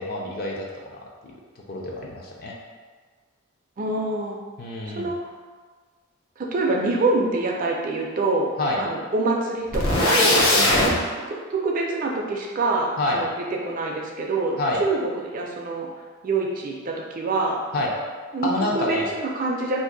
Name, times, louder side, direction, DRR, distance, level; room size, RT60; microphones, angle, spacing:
voice 1, 0.0-1.4 1.7-2.6 4.6-5.1 8.6-8.8 10.2-10.9 13.0-13.2 14.6-14.8 17.7-17.9 18.4-19.1, left 2 dB, 45° left, -2 dB, 0.5 m, -27 dB
voice 2, 3.8-4.4 4.9-5.2 6.4-8.5 8.8-10.8 11.5-13.3 13.6-15.0 15.3-15.9 16.2-17.6 18.3-19.8, right 3 dB, 40° right, -1 dB, 0.4 m, -25 dB
sound 1, 9.7-10.9, left 1 dB, 70° left, 0.8 m, -19 dB
2.6 x 2.5 x 3.8 m, 1.5 s
head